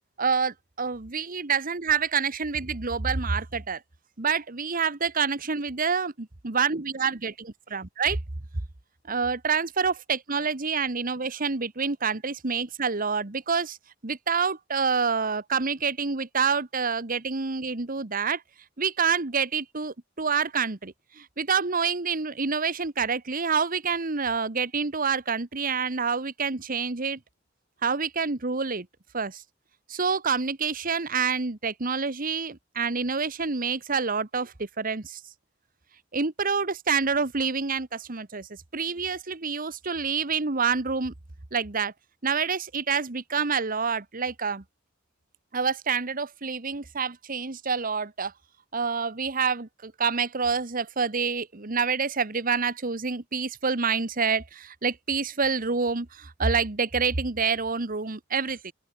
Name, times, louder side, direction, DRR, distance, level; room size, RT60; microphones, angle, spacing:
voice 1, 0.2-3.8 4.2-6.1 6.4-8.2 9.1-13.8 14.0-18.4 18.8-27.2 27.8-28.9 29.1-29.4 29.9-35.2 36.1-38.5 38.7-41.1 41.5-41.9 42.2-44.6 45.5-48.3 48.7-58.7, right 5 dB, 45° right, 1.3 m, -27 dB
open air
head